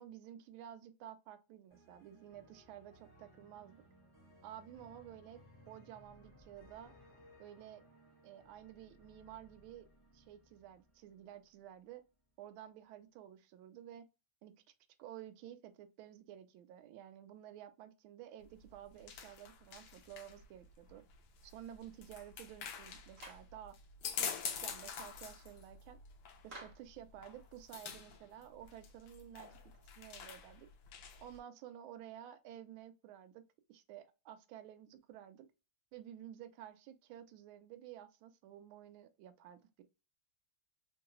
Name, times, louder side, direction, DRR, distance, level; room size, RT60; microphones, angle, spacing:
voice 1, 0.0-3.8 4.4-5.4 5.7-6.9 7.4-7.8 8.2-9.9 10.1-12.0 12.4-14.1 14.4-14.5 15.0-21.0 21.4-23.7 24.2-24.3 24.6-26.0 26.4-29.6 29.8-30.7 31.2-33.4 33.7-35.5 35.9-39.8, right 11 dB, 75° right, 1.3 m, -52 dB
sound 1, 1.7-11.8, equal, 15° left, 1.1 m, -63 dB
sound 2, 18.4-31.4, left 7 dB, 70° left, 1.0 m, -47 dB
Clapping, 23.2-23.5 26.5-26.9, right 2 dB, 45° right, 1.3 m, -51 dB
3.7 x 2.2 x 2.9 m
omnidirectional pair, 2.4 m